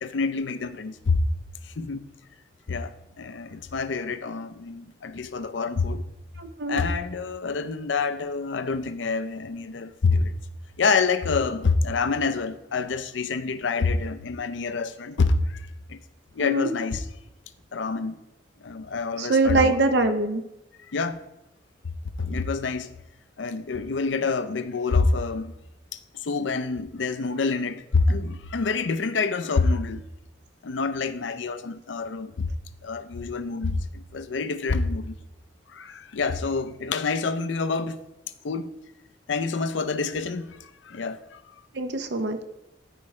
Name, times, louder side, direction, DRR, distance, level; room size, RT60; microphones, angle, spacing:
voice 1, 0.0-1.2 1.8-2.1 2.7-6.0 6.7-10.3 10.8-16.0 16.4-17.0 17.7-18.2 18.6-19.8 20.9-21.2 22.2-22.9 23.4-25.5 25.9-30.0 30.6-32.5 32.8-35.2 35.7-38.0 38.4-38.7 39.3-40.6 40.8-41.4, left 4 dB, 80° left, 0.5 m, -27 dB
voice 2, 6.4-6.8 16.4-16.7 19.2-20.4 41.7-42.4, right 2 dB, 60° right, 0.7 m, -23 dB
13.5 x 4.8 x 3.2 m
head